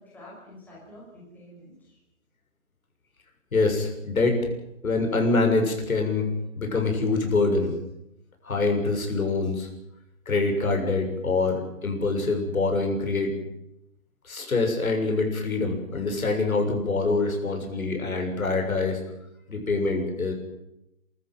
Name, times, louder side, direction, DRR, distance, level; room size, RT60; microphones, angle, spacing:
voice 1, 0.0-2.0 19.4-19.5, left 1 dB, 5° left, -6 dB, 5.9 m, -48 dB
voice 2, 3.5-4.5 4.8-6.3 6.6-7.8 8.4-9.7 10.3-13.4 14.2-19.0 19.5-20.3, left 3 dB, 75° left, 3 dB, 7.1 m, -25 dB
28.5 x 14.0 x 9.3 m, 0.83 s
hypercardioid pair, 165°, 42 cm